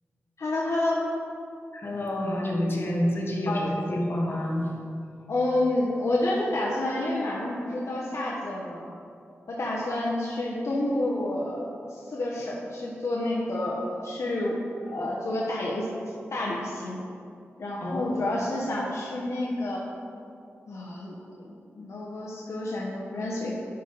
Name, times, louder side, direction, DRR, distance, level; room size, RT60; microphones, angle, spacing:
voice 1, 0.4-1.0 3.5-3.6 3.9-4.0 5.3-8.9 9.5-15.9 16.3-17.0 17.6-19.8 20.7-21.2 21.4-23.5, left 1 dB, 70° left, -5 dB, 1.0 m, -29 dB
voice 2, 1.7-4.7 17.8-18.3, left 1 dB, 50° left, -2 dB, 1.5 m, -28 dB
11.0 x 5.4 x 4.0 m, 2.5 s
wide cardioid pair, 115°, 5 cm